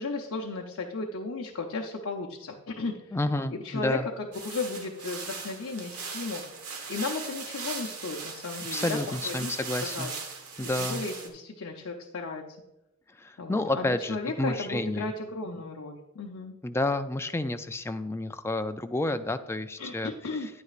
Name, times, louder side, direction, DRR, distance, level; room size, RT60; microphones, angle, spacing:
voice 1, 0.0-3.1 3.6-6.4 6.9-9.5 9.8-10.1 10.8-12.4 13.4-16.5 19.8-20.5, left 3 dB, 65° left, 0 dB, 0.7 m, -35 dB
voice 2, 3.1-4.1 8.7-10.1 10.6-11.0 13.2-15.1 16.6-20.1, left 2 dB, 10° left, 9 dB, 0.3 m, -30 dB
sound 1, 4.3-11.3, right 5 dB, 80° right, 1.3 m, -38 dB
10.0 x 9.5 x 2.4 m, 0.94 s
head